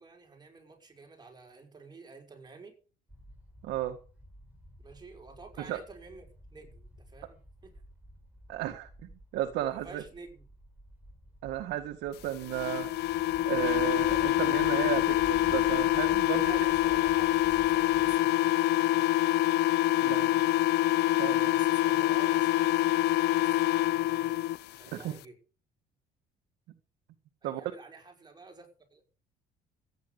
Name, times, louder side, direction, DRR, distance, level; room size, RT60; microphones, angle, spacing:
voice 1, 0.0-2.8 4.8-7.7 9.7-10.5 16.3-19.2 21.4-24.4 24.7-25.3 27.4-29.0, right 4 dB, 25° right, 6.0 m, -50 dB
sound 1, 3.1-18.2, equal, 10° right, 7.7 m, -51 dB
voice 2, 3.6-4.0 5.7-5.8 8.5-8.9 9.3-10.0 11.4-12.9 13.4-16.6 20.0-20.5 21.2-21.5 24.9-25.1 27.4-27.7, right 13 dB, 85° right, 1.8 m, -34 dB
sound 2, 12.5-24.6, left 15 dB, 75° left, 0.6 m, -26 dB
15.0 x 9.9 x 6.7 m
cardioid pair, 110°, 17 cm